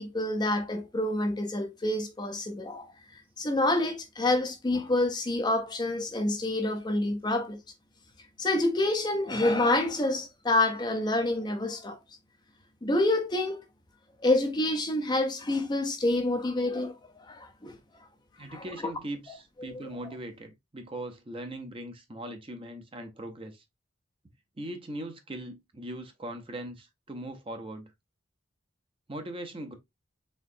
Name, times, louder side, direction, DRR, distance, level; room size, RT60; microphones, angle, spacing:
voice 1, 0.0-2.9 3.4-7.6 8.4-12.0 12.8-13.6 14.2-17.0 17.3-17.8 18.5-18.7, left 2 dB, 20° left, 0.5 m, -27 dB
voice 2, 18.4-23.6 24.6-27.9 29.1-29.8, right 1 dB, 25° right, 0.6 m, -40 dB
4.3 x 3.7 x 2.6 m
head